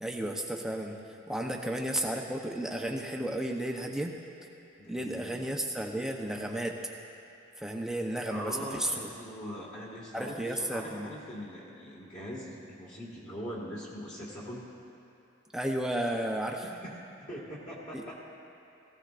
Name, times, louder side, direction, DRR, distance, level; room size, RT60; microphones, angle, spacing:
voice 1, 0.0-4.1 4.9-6.8 7.6-9.1 10.1-11.1 15.5-16.6 17.9-18.1, right 1 dB, 5° right, 1 dB, 0.7 m, -33 dB
voice 2, 4.8-5.4 8.3-14.7 16.6-18.1, equal, 35° left, -5 dB, 1.9 m, -42 dB
18.0 x 16.0 x 2.5 m, 3.0 s
head